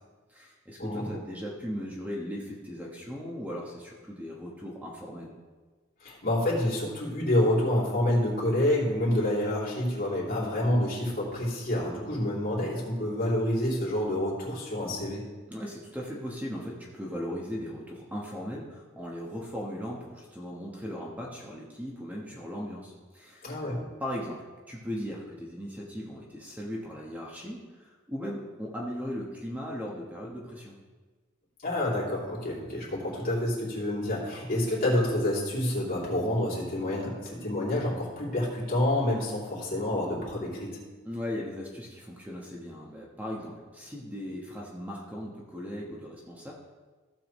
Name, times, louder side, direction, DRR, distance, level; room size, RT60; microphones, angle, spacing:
voice 1, 0.3-5.3 15.5-23.6 24.0-30.7 41.0-46.5, equal, 10° right, -3 dB, 1.1 m, -38 dB
voice 2, 6.0-15.3 23.4-23.8 31.6-40.8, left 1 dB, 45° left, -6 dB, 3.1 m, -28 dB
15.0 x 7.2 x 3.1 m, 1.4 s
head